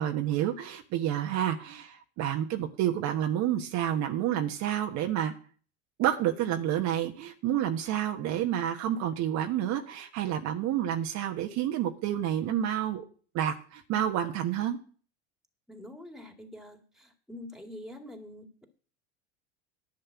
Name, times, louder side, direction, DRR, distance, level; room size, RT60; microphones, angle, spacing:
voice 1, 0.0-5.3 6.0-13.1 13.3-14.8, right 11 dB, 50° right, 4 dB, 1.3 m, -29 dB
voice 2, 15.7-18.6, left 1 dB, ahead, 5 dB, 2.3 m, -46 dB
11.0 x 5.5 x 8.5 m, 0.41 s
hypercardioid pair, 85°, 36 cm